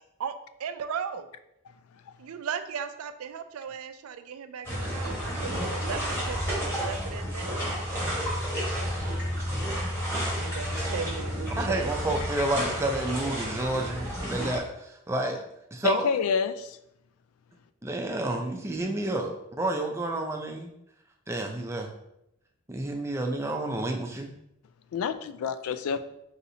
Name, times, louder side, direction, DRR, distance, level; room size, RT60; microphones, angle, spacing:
voice 1, 0.6-1.3 2.2-7.6 10.3-11.9, right 7 dB, 80° right, 0.4 m, -36 dB
sound 1, 4.6-14.6, equal, 10° left, 1.4 m, -31 dB
voice 2, 11.6-15.4 15.7-16.1 17.8-20.7 21.3-21.9 22.7-24.3, right 2 dB, 10° right, 0.4 m, -30 dB
voice 3, 15.8-16.8 24.9-26.0, left 6 dB, 80° left, 0.3 m, -28 dB
4.1 x 4.1 x 2.7 m
head